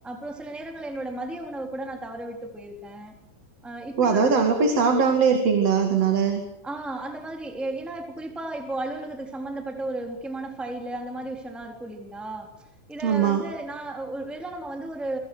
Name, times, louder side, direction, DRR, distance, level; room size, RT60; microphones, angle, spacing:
voice 1, 0.0-3.1 3.6-4.5 6.6-12.5 12.9-15.2, right 2 dB, ahead, 3 dB, 3.5 m, -34 dB
voice 2, 4.0-6.5 13.0-13.4, right 5 dB, 55° right, 5 dB, 3.3 m, -21 dB
29.0 x 24.0 x 6.4 m, 0.82 s
omnidirectional pair, 3.6 m